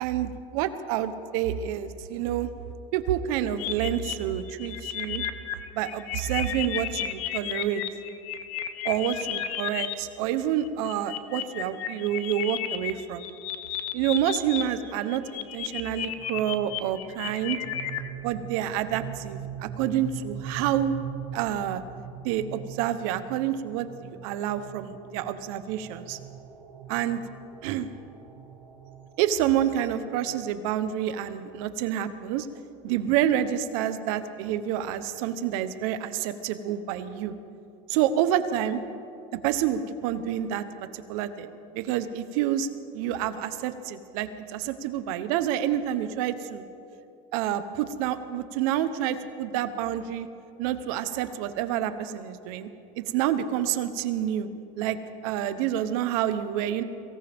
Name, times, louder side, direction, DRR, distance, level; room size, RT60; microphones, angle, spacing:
voice 1, 0.0-2.5 2.9-5.2 5.7-7.8 8.8-13.2 13.9-17.6 18.2-21.0 21.3-21.8 22.2-26.2 26.9-27.2 27.6-27.9 29.2-32.5 32.8-37.3 37.9-38.8 39.4-40.6 40.9-42.7 42.9-46.6 47.3-50.3 50.6-52.7 53.1-54.5 54.8-55.0 55.2-56.8, right 10 dB, 75° right, 11 dB, 1.0 m, -28 dB
sound 1, 3.6-9.9 10.6-14.6 14.9-18.1, left 11 dB, 80° left, 1.0 m, -33 dB
sound 2, 16.1-30.9, right 8 dB, 25° right, 3.8 m, -42 dB
23.0 x 17.5 x 3.6 m, 2.7 s
cardioid pair, 140°, 18 cm